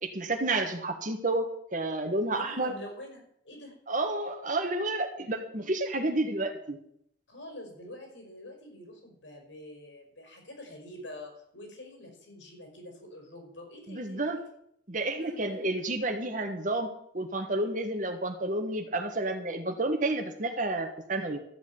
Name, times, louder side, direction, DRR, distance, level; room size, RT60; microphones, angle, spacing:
voice 1, 0.0-2.7 3.9-6.8 13.9-14.4 14.9-21.4, right 2 dB, 45° right, 6 dB, 1.6 m, -30 dB
voice 2, 2.3-3.7 7.3-14.2 15.2-15.7, left 1 dB, 90° left, 2 dB, 5.2 m, -46 dB
13.5 x 6.2 x 8.8 m, 0.70 s
head